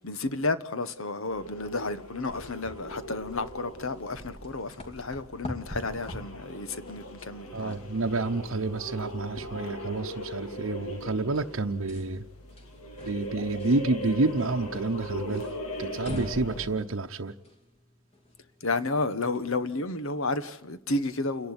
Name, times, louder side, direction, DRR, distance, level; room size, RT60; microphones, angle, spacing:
voice 1, 0.0-7.8 18.6-21.5, left 2 dB, 70° left, 1.3 m, -31 dB
sound 1, 1.2-16.9, equal, 90° left, 2.9 m, -40 dB
sound 2, 2.3-19.6, left 1 dB, 30° left, 2.7 m, -46 dB
voice 2, 7.5-12.2 13.0-15.5 15.8-17.3, right 3 dB, 65° right, 0.9 m, -29 dB
28.5 x 11.5 x 9.7 m
head